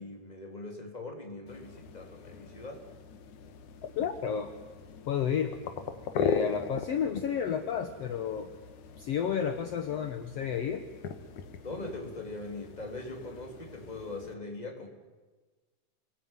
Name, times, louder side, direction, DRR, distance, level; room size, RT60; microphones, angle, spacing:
voice 1, 0.0-2.8 11.6-14.9, left 2 dB, 15° left, 2 dB, 3.8 m, -41 dB
sound 1, 1.5-14.3, left 6 dB, 80° left, 3.1 m, -39 dB
voice 2, 4.0-4.5 5.1-5.5 6.2-8.5 9.0-10.8, left 8 dB, 60° left, 6 dB, 2.2 m, -31 dB
28.0 x 20.5 x 9.4 m, 1.3 s
omnidirectional pair, 3.4 m